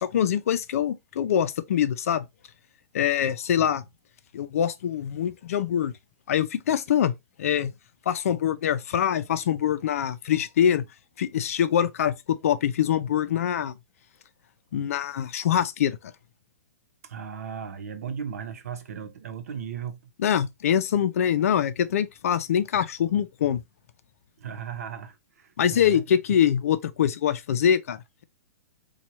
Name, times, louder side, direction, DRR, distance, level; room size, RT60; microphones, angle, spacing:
voice 1, 0.0-2.3 2.9-3.8 4.3-5.9 6.3-7.1 7.4-7.7 8.1-10.8 11.2-13.7 14.7-16.0 20.2-23.6 25.6-28.2, left 9 dB, 70° left, 0.5 m, -24 dB
voice 2, 17.0-20.0 24.4-26.0, right 7 dB, 75° right, 0.8 m, -36 dB
4.4 x 2.3 x 3.0 m
hypercardioid pair, 145°, 8 cm